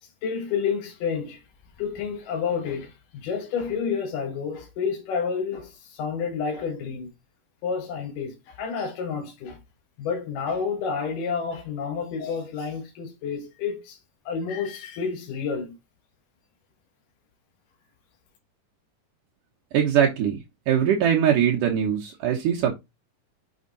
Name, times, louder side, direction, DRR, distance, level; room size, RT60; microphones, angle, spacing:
voice 1, 0.0-1.4 1.8-7.1 7.6-9.6 10.0-14.0 14.3-15.8, left 6 dB, 80° left, 2.9 m, -30 dB
voice 2, 19.7-20.4 20.7-22.7, right 9 dB, 75° right, 2.8 m, -21 dB
6.6 x 6.4 x 3.9 m
omnidirectional pair, 3.8 m